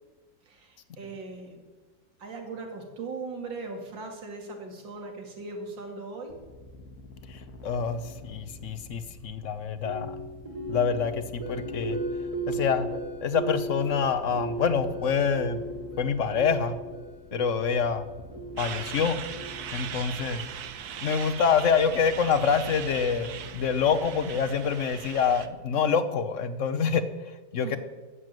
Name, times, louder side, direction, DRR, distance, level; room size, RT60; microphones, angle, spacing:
voice 1, 0.4-1.6 2.2-6.4 27.6-27.8, right 3 dB, 80° right, 2 dB, 3.0 m, -39 dB
sound 1, 6.3-25.3, left 1 dB, 85° left, 2.1 m, -48 dB
voice 2, 7.3-10.3 10.7-12.0 12.5-12.9 13.2-15.6 16.0-16.8 17.3-18.0 18.6-19.2 19.7-20.4 21.0-27.8, left 6 dB, 55° left, 12 dB, 0.9 m, -26 dB
sound 2, 9.8-19.9, right 1 dB, 20° right, 1.6 m, -36 dB
Truck, 18.6-25.5, right 9 dB, 60° right, 1.3 m, -39 dB
12.5 x 7.8 x 9.1 m, 1.3 s
omnidirectional pair, 2.0 m